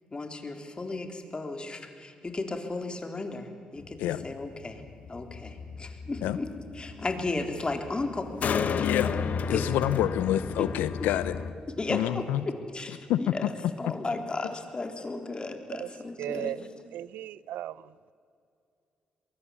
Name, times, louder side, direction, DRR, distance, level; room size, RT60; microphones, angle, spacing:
voice 1, 0.1-4.8 5.1-6.5 6.7-9.0 9.5-9.6 10.6-10.7 11.8-12.3 12.7-16.6, left 3 dB, 30° left, 3.7 m, -35 dB
sound 1, 3.8-11.5, left 6 dB, 60° left, 1.2 m, -33 dB
voice 2, 9.4-11.3 11.9-12.4 13.1-13.5, left 12 dB, 85° left, 0.7 m, -27 dB
voice 3, 16.2-16.6 16.9-17.8, right 12 dB, 80° right, 0.5 m, -35 dB
23.0 x 22.0 x 8.5 m
supercardioid pair, 50°, 3 cm